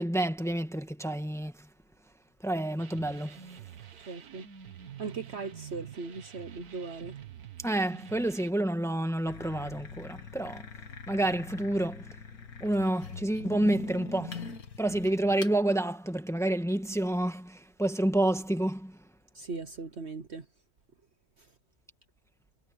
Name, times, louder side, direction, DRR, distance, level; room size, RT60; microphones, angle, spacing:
voice 1, 0.0-1.5 2.4-3.5 7.6-10.6 11.1-12.1 12.6-14.5 14.8-19.0, right 1 dB, ahead, 1.4 m, -29 dB
sound 1, 2.8-8.5, right 9 dB, 80° right, 1.7 m, -47 dB
voice 2, 4.1-4.5 5.0-7.2 19.3-20.4, right 4 dB, 50° right, 1.2 m, -39 dB
sound 2, 9.3-15.6, left 5 dB, 75° left, 2.3 m, -43 dB
omnidirectional pair, 1.6 m